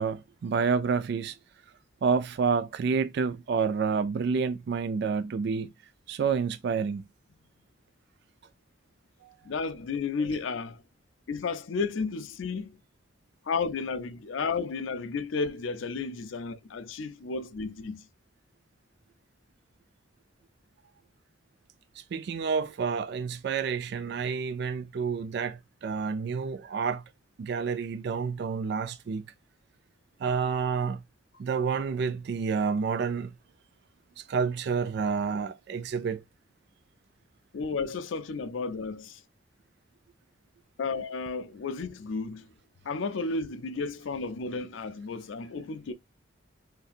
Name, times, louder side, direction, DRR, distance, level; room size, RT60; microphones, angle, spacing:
voice 1, 0.0-1.4 2.0-5.7 6.1-7.0 9.2-9.3 22.1-27.0 27.4-29.2 30.2-31.0 31.4-33.3 34.2-36.2, right 5 dB, 55° right, 0.3 m, -29 dB
voice 2, 9.4-10.8 11.3-12.8 13.5-18.0 37.5-39.2 40.8-42.5 42.8-45.9, left 4 dB, 75° left, 0.4 m, -32 dB
3.2 x 2.7 x 2.4 m
head